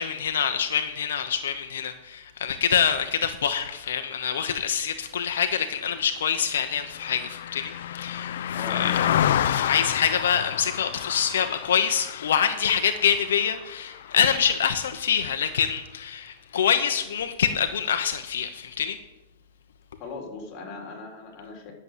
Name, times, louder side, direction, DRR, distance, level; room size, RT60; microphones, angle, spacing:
voice 1, 0.0-8.3 8.7-8.9 9.5-19.0, left 8 dB, 90° left, 8 dB, 0.9 m, -25 dB
Car passing by, 5.5-15.1 15.5-15.7, left 10 dB, 75° left, 0.6 m, -30 dB
voice 2, 8.5-9.2 20.0-21.7, left 4 dB, 35° left, 1 dB, 3.7 m, -38 dB
11.0 x 7.1 x 8.0 m, 1.0 s
supercardioid pair, 155°, 0 cm